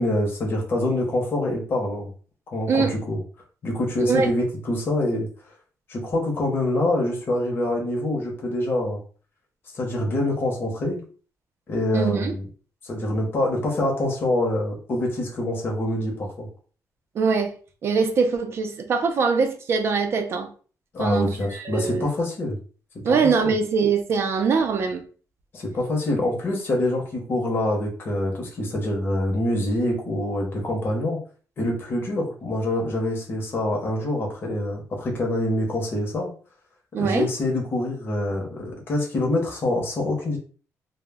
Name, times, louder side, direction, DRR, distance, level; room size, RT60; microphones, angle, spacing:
voice 1, 0.0-2.1 2.5-3.2 3.6-5.3 5.9-9.0 9.7-11.0 11.7-12.5 12.8-16.5 20.9-22.6 22.9-23.2 23.4-23.5 25.5-31.2 31.6-36.3 37.0-40.4, left 1 dB, 35° left, 0.7 m, -25 dB
voice 2, 4.0-4.3 11.9-12.3 17.1-17.5 17.8-20.5 21.0-22.1 23.0-25.0 36.9-37.3, right 5 dB, 45° right, 0.4 m, -23 dB
2.0 x 2.0 x 3.4 m
cardioid pair, 170°, 6 cm